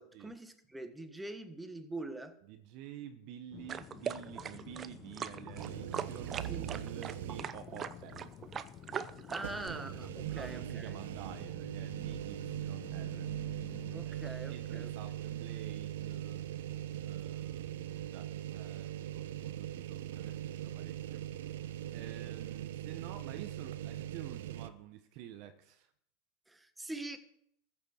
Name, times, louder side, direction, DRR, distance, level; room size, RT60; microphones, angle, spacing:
voice 1, 0.0-2.4 6.5-6.6 9.3-11.0 13.9-14.9 26.5-27.2, right 2 dB, 10° right, 1.4 m, -43 dB
voice 2, 2.5-8.3 9.4-9.8 10.1-13.3 14.0-16.5 17.0-21.2 21.9-25.9, right 11 dB, 55° right, 1.0 m, -50 dB
sound 1, 3.5-14.1, left 10 dB, 40° left, 0.7 m, -51 dB
sound 2, 3.7-9.7, right 8 dB, 30° right, 0.7 m, -41 dB
sound 3, 5.6-7.7 8.1-8.2 9.4-24.7, right 12 dB, 70° right, 0.7 m, -40 dB
14.5 x 6.7 x 6.5 m
hypercardioid pair, 95°, 0 cm